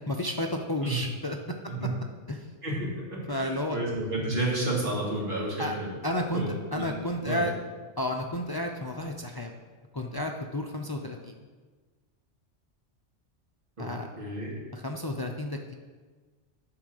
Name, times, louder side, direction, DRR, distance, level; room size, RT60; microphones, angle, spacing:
voice 1, 0.1-1.4 2.3-2.5 3.3-3.8 5.6-5.7 6.0-6.4 6.7-7.5 8.0-9.5 9.9-11.3 13.8-14.1 14.7-15.7, left 1 dB, 40° left, 3 dB, 0.3 m, -31 dB
voice 2, 2.6-5.9 6.3-6.9 7.2-7.5 13.8-13.9 14.2-14.6, right 2 dB, 45° right, -4 dB, 2.2 m, -31 dB
9.7 x 3.8 x 6.5 m, 1.4 s
omnidirectional pair, 1.2 m